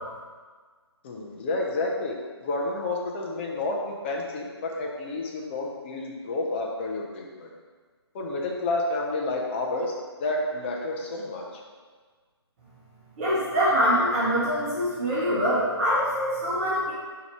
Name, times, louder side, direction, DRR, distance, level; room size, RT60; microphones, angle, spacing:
voice 1, 1.0-7.5 8.1-9.9 10.2-11.4, left 2 dB, 25° left, -1 dB, 0.5 m, -30 dB
voice 2, 13.2-16.9, equal, 30° right, -9 dB, 1.0 m, -24 dB
3.9 x 2.9 x 4.5 m, 1.5 s
figure-of-eight pair, 150°, 14 cm